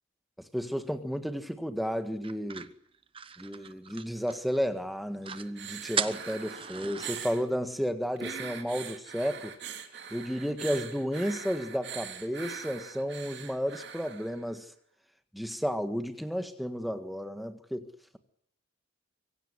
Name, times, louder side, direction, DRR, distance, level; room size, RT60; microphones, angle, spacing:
voice 1, 0.4-2.7 3.4-9.5 10.1-14.7 15.3-17.9, equal, ahead, 8 dB, 1.6 m, -32 dB
sound 1, 2.2-4.6 4.9-5.0 5.2-5.5 5.9-7.3, right 6 dB, 25° right, 1.0 m, -37 dB
sound 2, 5.3-7.4 8.2-14.5 15.5-15.6, right 7 dB, 55° right, 2.9 m, -42 dB
24.5 x 16.5 x 9.7 m, 0.70 s
head